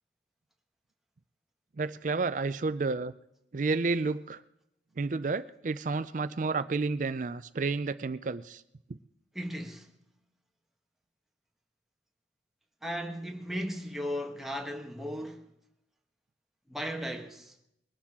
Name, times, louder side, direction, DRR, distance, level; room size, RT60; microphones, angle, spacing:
voice 1, 1.8-3.1 3.5-4.4 5.0-8.6 8.9-9.0, right 4 dB, 45° right, 0.4 m, -31 dB
voice 2, 9.3-9.9 12.8-15.5 16.7-17.6, equal, ahead, 1.3 m, -36 dB
21.5 x 11.5 x 3.7 m
head